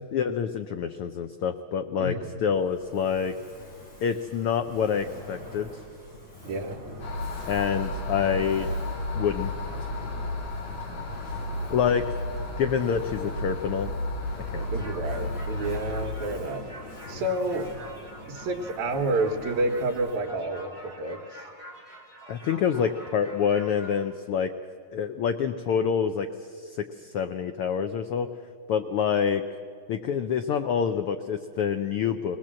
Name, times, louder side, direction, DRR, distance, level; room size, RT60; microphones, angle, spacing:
voice 1, 0.1-3.3 4.0-5.7 7.5-8.7 9.1-9.9 10.7-11.0 11.7-12.1 12.6-13.9 14.5-14.7 22.3-24.5 24.9-26.3 26.6-28.3 28.7-29.4 29.9-32.4, left 7 dB, 90° left, 8 dB, 1.2 m, -27 dB
voice 2, 2.0-2.4 6.4-6.8 14.7-16.6 17.1-17.7 18.3-21.4, right 2 dB, 80° right, 1 dB, 2.6 m, -29 dB
Fire, 2.4-20.4, left 1 dB, 35° left, 5.3 m, -44 dB
sound 1, 7.0-16.1, left 1 dB, 55° left, 3.2 m, -33 dB
sound 2, 14.5-24.0, equal, 15° left, 4.4 m, -46 dB
20.5 x 19.5 x 7.5 m, 2.2 s
omnidirectional pair, 3.3 m